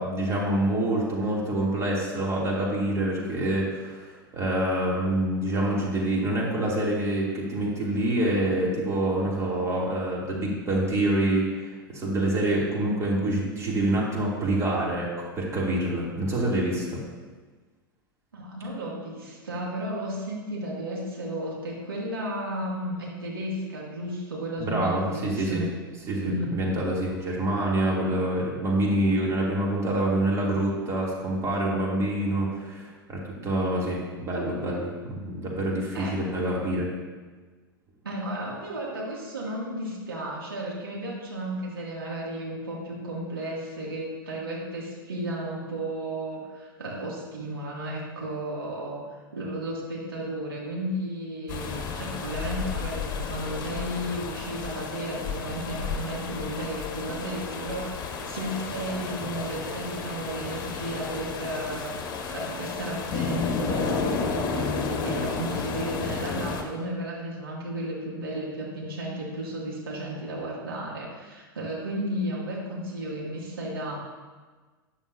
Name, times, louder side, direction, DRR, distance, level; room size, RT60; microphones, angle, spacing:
voice 1, 0.0-17.0 24.6-25.6 26.1-36.9, right 1 dB, 25° right, -4 dB, 3.2 m, -26 dB
voice 2, 18.3-25.7 26.2-26.5 35.9-36.1 38.0-74.0, right 1 dB, 80° right, -4 dB, 2.8 m, -33 dB
sound 1, 51.5-66.6, left 5 dB, 35° left, 1.8 m, -32 dB
12.5 x 11.0 x 2.9 m, 1.4 s
figure-of-eight pair, 90°, 12 cm